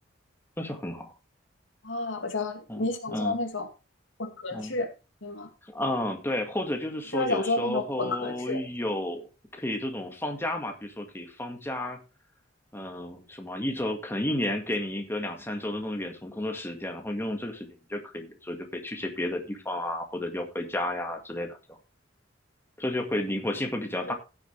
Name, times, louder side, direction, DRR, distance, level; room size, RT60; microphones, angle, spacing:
voice 1, 0.6-1.1 2.7-3.4 4.5-4.8 5.6-12.0 12.7-21.8 22.8-24.1, left 1 dB, 15° left, 3 dB, 1.9 m, -32 dB
voice 2, 1.8-3.7 4.2-4.9 5.2-5.5 7.1-8.6 24.1-24.2, left 2 dB, 80° left, 5 dB, 2.5 m, -30 dB
16.0 x 7.3 x 3.4 m, 0.29 s
head